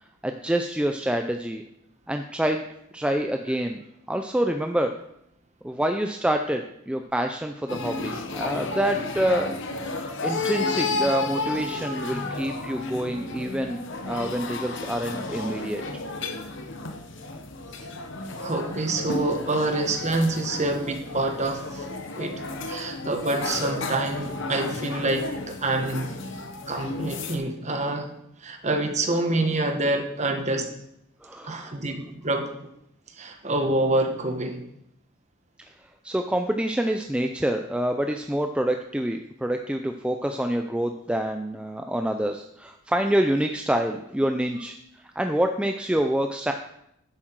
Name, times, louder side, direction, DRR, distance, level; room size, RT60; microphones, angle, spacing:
voice 1, 0.2-1.6 2.1-2.6 2.9-3.8 4.1-5.0 5.6-9.5 10.2-15.8 31.2-31.7 35.6-35.7 36.0-46.5, right 1 dB, 5° right, 5 dB, 0.4 m, -27 dB
sound 1, 7.7-27.4, left 3 dB, 60° left, 0.9 m, -32 dB
voice 2, 18.4-21.9 22.2-22.3 22.7-26.1 26.7-28.1 28.4-30.7 31.4-32.7 33.2-34.6, right 2 dB, 35° right, 4 dB, 1.3 m, -26 dB
10.5 x 7.6 x 4.6 m, 0.78 s
head